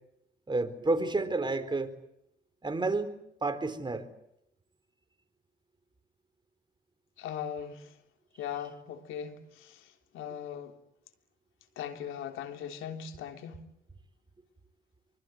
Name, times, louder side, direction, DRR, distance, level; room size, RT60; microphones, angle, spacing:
voice 1, 0.5-1.9 2.6-3.2 3.4-4.1, right 3 dB, 25° right, 4.2 m, -30 dB
voice 2, 7.2-8.0 8.4-10.8 11.7-13.6, left 8 dB, 90° left, 3.4 m, -39 dB
25.5 x 24.5 x 8.0 m
cardioid pair, 90°, 20 cm